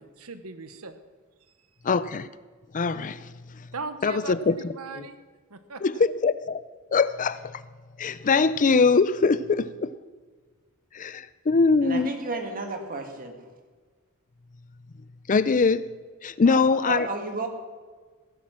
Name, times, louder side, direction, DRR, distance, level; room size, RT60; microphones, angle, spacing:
voice 1, 0.2-1.0 3.7-5.2 5.5-6.0, right 4 dB, 80° right, 1.1 m, -38 dB
voice 2, 1.8-2.3 2.7-3.3 4.0-4.6 4.9-5.0 5.8-6.6 6.9-7.6 8.0-9.9 10.9-12.1 15.3-15.9 16.2-17.1, left 4 dB, 35° left, 0.5 m, -22 dB
voice 3, 11.8-13.3 16.5-17.5, right 3 dB, 40° right, 2.3 m, -33 dB
17.0 x 10.5 x 6.0 m
head